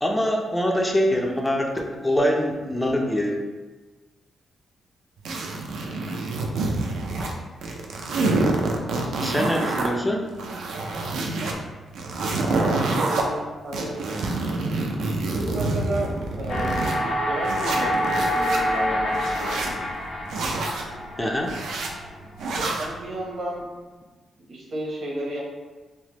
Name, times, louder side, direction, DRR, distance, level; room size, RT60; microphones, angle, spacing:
voice 1, 0.0-3.4 7.2-7.3 9.2-10.3 21.2-21.6, equal, 10° left, 1 dB, 0.4 m, -24 dB
sound 1, 5.3-7.3 7.6-9.9 10.3-11.5 11.9-13.2 13.7-17.0 17.4-18.6 19.1-19.7 20.3-20.8 21.4-21.9 22.4-22.9, right 3 dB, 90° right, 0.4 m, -27 dB
voice 2, 12.3-14.0 15.3-19.7 22.8-23.6 24.5-25.4, right 1 dB, 65° right, -3 dB, 0.8 m, -32 dB
sound 2, 16.5-22.5, equal, 70° left, 0.6 m, -27 dB
3.2 x 2.1 x 2.9 m, 1.3 s
cardioid pair, 100°, 0 cm